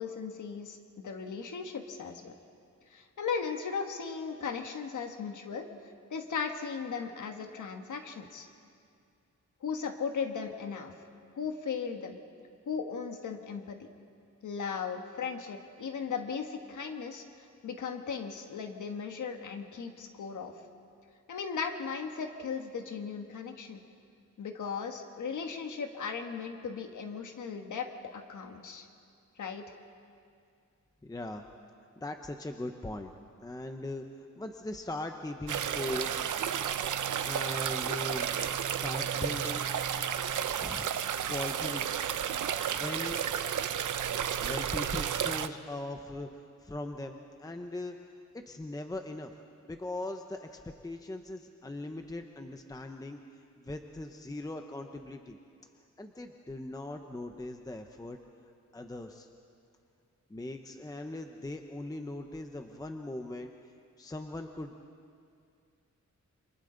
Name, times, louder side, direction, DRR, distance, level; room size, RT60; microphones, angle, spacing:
voice 1, 0.0-2.3 2.9-5.7 6.1-8.5 9.6-10.9 11.3-12.2 12.7-13.9 14.4-17.2 17.6-20.5 21.3-23.8 24.4-28.9 29.4-29.6, left 6 dB, 80° left, 5 dB, 1.4 m, -37 dB
voice 2, 31.0-31.5 32.0-33.1 33.4-36.2 37.2-38.3 38.6-39.7 40.6-40.9 41.3-41.9 42.7-43.2 44.4-48.0 48.3-49.3 49.6-53.2 53.6-55.4 56.0-58.2 58.7-59.3 60.3-63.5 64.0-64.7, left 2 dB, 10° left, 5 dB, 0.8 m, -40 dB
sound 1, 35.5-45.5, right 9 dB, 85° right, 0.8 m, -32 dB
29.0 x 27.0 x 3.9 m, 2.4 s
wide cardioid pair, 165°, 30 cm